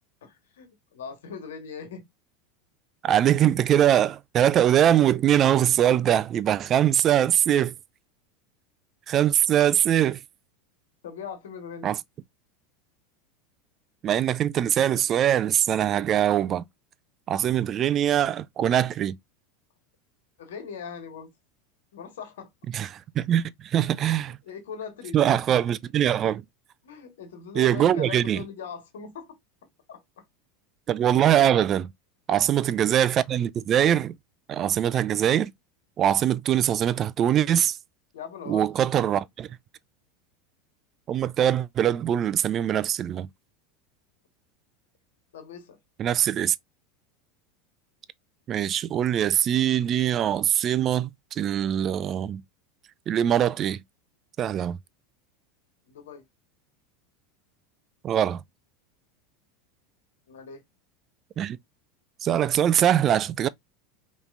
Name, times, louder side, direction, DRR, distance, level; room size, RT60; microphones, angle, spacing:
voice 1, 0.2-2.0 11.0-11.9 20.4-21.3 21.9-22.5 24.4-25.4 26.8-29.3 29.9-30.2 32.3-32.4 32.7-32.8 38.1-38.7 45.3-45.8 55.9-56.2 60.3-60.6, left 6 dB, 75° left, 1.4 m, -40 dB
voice 2, 3.0-7.7 9.1-10.2 11.8-12.0 14.0-16.6 17.3-19.2 22.7-24.4 25.1-26.4 27.6-28.4 30.9-31.9 32.3-34.2 34.5-35.5 36.0-37.8 38.5-39.5 41.1-43.3 46.0-46.6 48.5-52.4 53.1-53.8 54.4-54.8 58.0-58.4 61.4-61.6 62.2-63.5, right 10 dB, 40° right, 0.3 m, -22 dB
5.1 x 3.1 x 2.5 m
hypercardioid pair, 90°, 0 cm